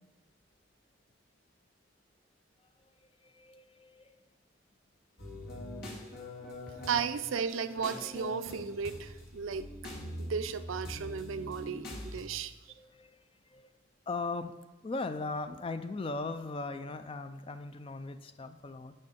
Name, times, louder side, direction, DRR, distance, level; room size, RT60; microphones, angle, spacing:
voice 1, 3.2-4.2 12.7-13.7 14.1-14.6 14.8-18.9, left 3 dB, 25° left, 10 dB, 0.4 m, -39 dB
sound 1, 5.2-12.2, left 1 dB, 50° left, 2.1 m, -43 dB
voice 2, 6.8-9.7 10.2-12.5, right 6 dB, 85° right, 12 dB, 0.4 m, -34 dB
9.9 x 5.4 x 4.3 m, 1.1 s
head